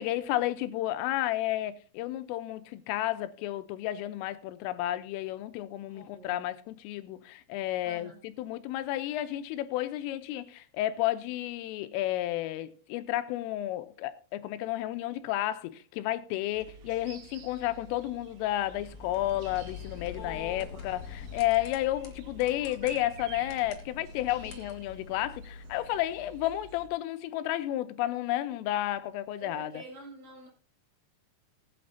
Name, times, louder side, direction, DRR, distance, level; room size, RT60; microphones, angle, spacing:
voice 1, 0.0-8.1 8.4-29.7, left 14 dB, 85° left, 3.3 m, -32 dB
voice 2, 5.9-6.5 7.8-8.2 20.1-21.0 24.4-24.6 29.4-30.5, equal, 45° right, 6.8 m, -46 dB
sound 1, 16.5-26.9, right 5 dB, 65° right, 2.2 m, -50 dB
sound 2, 18.7-26.0, left 6 dB, 60° left, 2.1 m, -46 dB
19.5 x 8.7 x 2.7 m
omnidirectional pair, 5.8 m